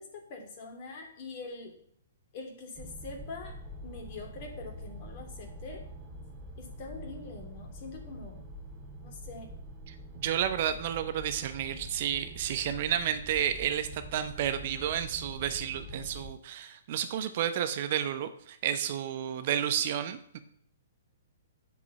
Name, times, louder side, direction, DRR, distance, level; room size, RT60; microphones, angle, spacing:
voice 1, 0.0-1.7 2.3-3.5 3.8-5.8 6.6-8.4 9.0-9.5 19.3-19.4, left 3 dB, 40° left, 2 dB, 2.9 m, -44 dB
sound 1, 2.7-16.3, equal, 30° right, 2.6 m, -45 dB
voice 2, 9.9-20.4, right 10 dB, 45° right, 10 dB, 0.9 m, -31 dB
8.2 x 5.4 x 7.7 m, 0.66 s
figure-of-eight pair, 120°, 0 cm